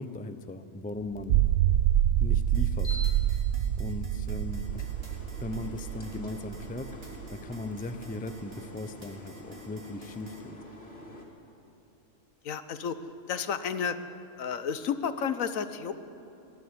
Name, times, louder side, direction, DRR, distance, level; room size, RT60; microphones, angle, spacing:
voice 1, 0.0-1.4 2.2-3.0 3.3-3.4 3.8-4.9 5.4-6.9 7.3-10.6, left 2 dB, 10° left, 10 dB, 0.4 m, -38 dB
sound 1, 1.1-7.6, right 11 dB, 80° right, 1.0 m, -27 dB
sound 2, 2.2-11.2, left 1 dB, 45° left, 2.8 m, -47 dB
sound 3, 2.5-10.4, right 2 dB, 45° right, 2.7 m, -51 dB
voice 2, 12.4-13.0 13.3-14.0 14.4-15.9, left 7 dB, 75° left, 11 dB, 1.3 m, -31 dB
20.5 x 13.0 x 9.7 m, 2.7 s
omnidirectional pair, 1.4 m